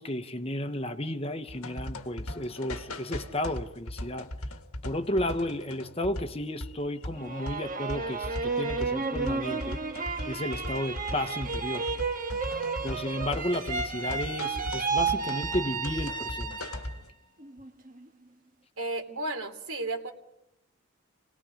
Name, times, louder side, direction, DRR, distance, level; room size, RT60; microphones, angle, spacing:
voice 1, 0.0-4.3 4.8-9.8 10.1-11.9 12.8-16.5, left 1 dB, 25° left, 1.1 m, -33 dB
sound 1, 1.5-17.1, left 1 dB, 85° left, 1.6 m, -39 dB
sound 2, 7.2-17.0 17.4-18.1, right 4 dB, 40° right, 1.4 m, -32 dB
voice 2, 18.8-20.1, right 2 dB, 85° right, 3.2 m, -33 dB
30.0 x 19.0 x 5.1 m
head